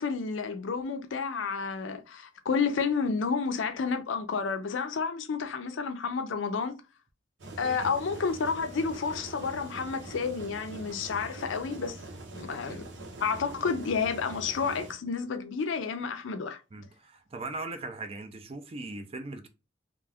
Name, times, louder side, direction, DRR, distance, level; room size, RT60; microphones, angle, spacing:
voice 1, 0.0-6.7 7.6-12.0 12.3-12.9 13.2-16.6, left 5 dB, 75° left, 0.5 m, -30 dB
sound 1, 7.4-14.9, right 2 dB, 75° right, 0.7 m, -44 dB
voice 2, 16.7-19.5, right 2 dB, 30° right, 0.4 m, -39 dB
2.5 x 2.3 x 3.4 m
head